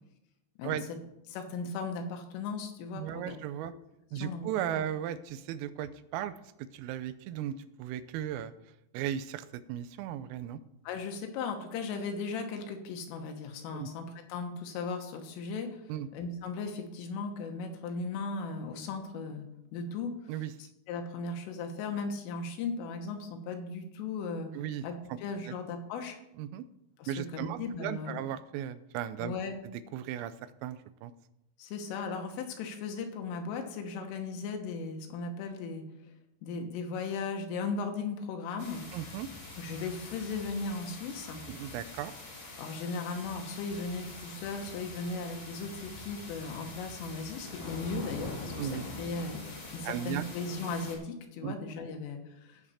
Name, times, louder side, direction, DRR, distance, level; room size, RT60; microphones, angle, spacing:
voice 1, 1.3-3.8 4.2-4.8 10.9-14.1 14.3-15.8 16.1-19.5 19.7-20.1 20.9-24.5 24.8-24.9 25.2-26.2 27.0-28.2 29.2-29.6 31.6-35.8 36.4-38.9 39.6-41.4 42.6-48.7 49.0-49.4 49.7-52.6, left 4 dB, 75° left, 4 dB, 3.6 m, -37 dB
voice 2, 3.0-3.7 4.1-8.5 8.9-10.6 13.7-13.9 15.9-16.1 20.3-20.5 24.5-24.8 25.1-25.2 25.5-25.6 26.4-26.6 27.1-29.3 29.9-30.3 30.6-31.1 38.9-39.3 41.5-42.1 48.6-48.8 49.8-50.2 51.4-51.6, right 11 dB, 85° right, 13 dB, 3.3 m, -36 dB
sound 1, 38.6-51.0, left 2 dB, 35° left, 2.3 m, -44 dB
16.5 x 6.6 x 4.2 m, 0.84 s
omnidirectional pair, 5.9 m